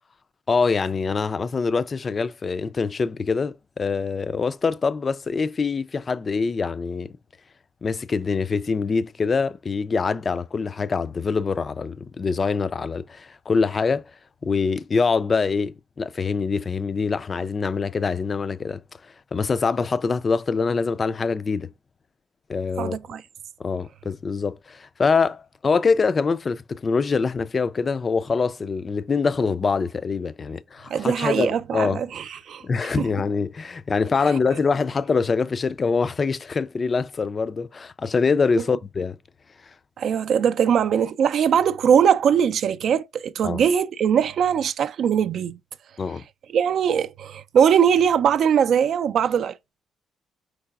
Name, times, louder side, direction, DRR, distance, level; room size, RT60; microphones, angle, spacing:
voice 1, 0.5-7.1 7.8-14.1 14.4-18.8 19.3-21.7 22.5-23.0 23.6-32.0 32.6-39.2 43.4-43.6 46.0-46.2, left 4 dB, 35° left, 0.3 m, -24 dB
voice 2, 22.8-23.2 30.9-33.1 40.0-45.6 46.5-49.6, right 8 dB, 65° right, 0.3 m, -21 dB
4.6 x 3.9 x 2.3 m
cardioid pair, 90°, 0 cm